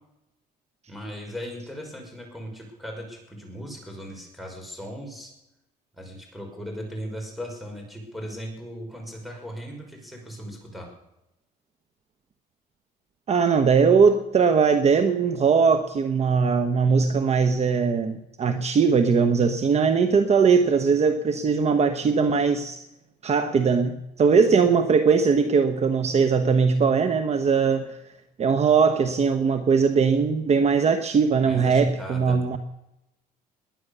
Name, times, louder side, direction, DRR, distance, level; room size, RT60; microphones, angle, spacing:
voice 1, 0.9-5.3 5.9-10.9 31.4-32.4, equal, ahead, 1 dB, 5.7 m, -38 dB
voice 2, 13.3-22.8 23.2-28.0 28.4-32.6, right 5 dB, 40° right, 8 dB, 1.1 m, -20 dB
20.5 x 9.7 x 6.8 m, 0.88 s
cardioid pair, 110°, 17 cm